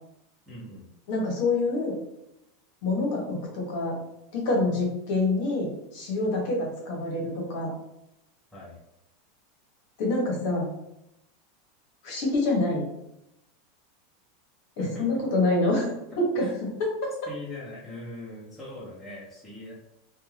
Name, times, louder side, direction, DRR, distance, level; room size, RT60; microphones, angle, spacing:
voice 1, 0.5-0.9 8.5-8.8 14.8-15.0 16.4-16.5 17.3-19.7, left 1 dB, 5° left, -8 dB, 0.7 m, -41 dB
voice 2, 1.1-2.0 2.8-4.0 4.3-7.7 10.0-10.7 12.0-12.9 14.8-15.9 16.2-17.1, left 2 dB, 50° left, -1 dB, 0.9 m, -26 dB
2.5 x 2.2 x 3.1 m, 0.85 s
supercardioid pair, 170°, 0 cm